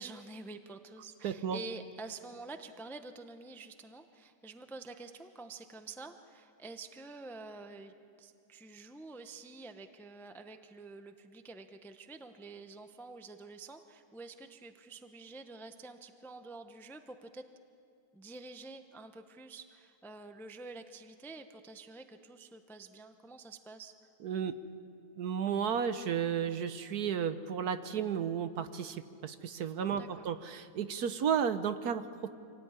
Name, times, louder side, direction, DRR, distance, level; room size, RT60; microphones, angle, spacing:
voice 1, 0.0-7.9 8.2-17.4 18.1-23.9 30.0-30.3, right 3 dB, ahead, 8 dB, 0.6 m, -48 dB
voice 2, 1.2-1.6 24.2-24.5 25.2-32.3, right 7 dB, 65° right, 11 dB, 1.3 m, -33 dB
26.0 x 18.0 x 9.8 m, 2.5 s
omnidirectional pair, 1.9 m